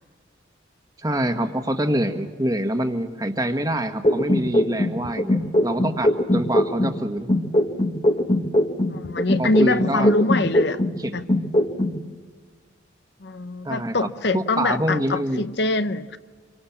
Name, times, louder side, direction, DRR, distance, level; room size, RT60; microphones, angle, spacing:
voice 1, 1.0-7.3 9.4-10.1 11.0-11.2 13.6-14.1 14.3-15.4, right 1 dB, 20° right, 1.5 m, -25 dB
sound 1, 4.0-7.0 7.3-11.0 11.3-12.0, left 1 dB, 30° left, 1.2 m, -21 dB
voice 2, 8.9-10.8 11.1-11.3 13.2-16.2, left 2 dB, 60° left, 0.8 m, -24 dB
28.5 x 24.5 x 7.3 m
head